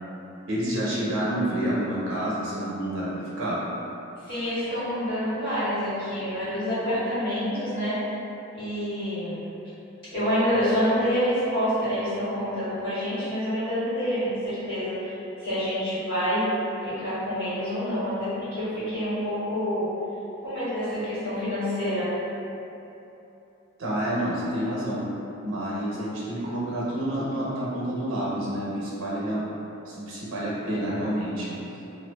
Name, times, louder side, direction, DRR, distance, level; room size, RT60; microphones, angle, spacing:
voice 1, 0.5-3.7 23.8-25.1 25.4-29.5 29.9-31.6, right 1 dB, 85° right, -6 dB, 0.7 m, -28 dB
voice 2, 4.2-8.0 8.5-9.4 10.1-15.2 15.4-16.5 16.8-19.9 20.4-22.1, equal, 60° left, -14 dB, 1.4 m, -27 dB
2.5 x 2.4 x 2.2 m, 2.9 s
head